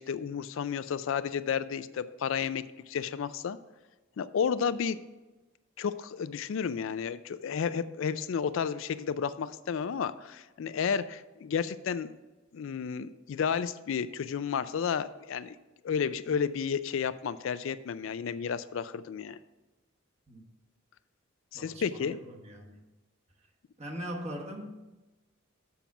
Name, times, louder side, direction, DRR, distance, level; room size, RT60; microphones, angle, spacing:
voice 1, 0.0-3.6 4.2-5.0 5.8-12.1 12.5-15.6 15.8-19.4 21.5-22.2, left 7 dB, 65° left, 14 dB, 0.4 m, -32 dB
voice 2, 21.5-22.9 23.4-23.5 23.8-24.8, equal, 30° right, 1 dB, 1.2 m, -41 dB
7.1 x 5.8 x 5.9 m, 1.1 s
head